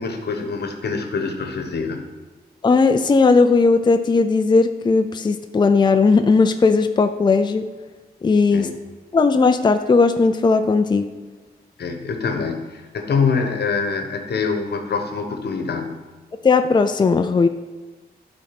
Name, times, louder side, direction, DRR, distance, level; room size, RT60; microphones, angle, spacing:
voice 1, 0.0-2.0 8.5-8.7 11.8-16.0, left 5 dB, 85° left, 5 dB, 1.1 m, -25 dB
voice 2, 2.6-7.7 8.2-8.7 9.1-11.1 16.4-17.5, left 4 dB, 25° left, 8 dB, 0.4 m, -17 dB
11.5 x 4.0 x 5.9 m, 1.3 s
wide cardioid pair, 125°, 17 cm